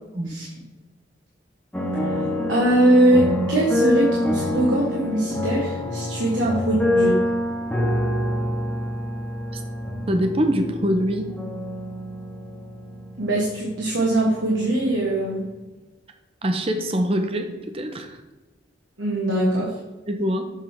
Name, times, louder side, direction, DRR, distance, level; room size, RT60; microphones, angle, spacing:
sound 1, 1.7-14.8 15.0-15.1, left 1 dB, 10° left, 1.0 m, -26 dB
voice 1, 2.0-7.1 13.2-15.5 19.0-19.7, right 1 dB, 85° right, -3 dB, 1.5 m, -21 dB
voice 2, 10.1-11.3 16.4-18.2 20.1-20.5, equal, 30° right, 6 dB, 0.7 m, -24 dB
7.2 x 3.4 x 5.8 m, 1.1 s
head